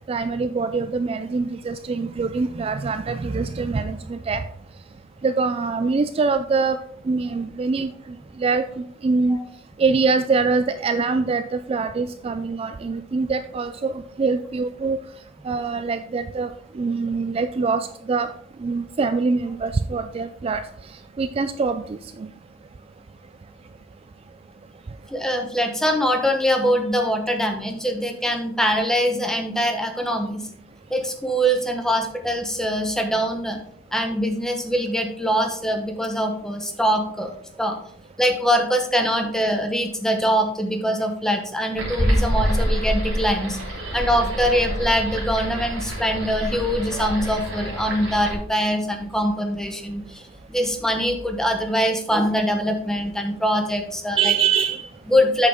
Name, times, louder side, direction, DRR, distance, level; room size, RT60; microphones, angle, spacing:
voice 1, 0.1-4.4 5.2-6.8 7.1-9.4 9.8-15.0 15.4-18.3 18.6-20.6 21.2-22.3 43.8-43.9 54.2-54.9, right 4 dB, 30° right, 10 dB, 0.3 m, -24 dB
voice 2, 25.1-30.5 30.9-33.6 33.9-37.3 37.6-37.8 38.2-43.6 43.9-50.2 50.5-54.3 55.1-55.5, equal, 5° left, 3 dB, 1.0 m, -23 dB
sound 1, 41.8-48.3, equal, 85° right, 2.8 m, -26 dB
8.2 x 6.4 x 3.6 m, 0.66 s
head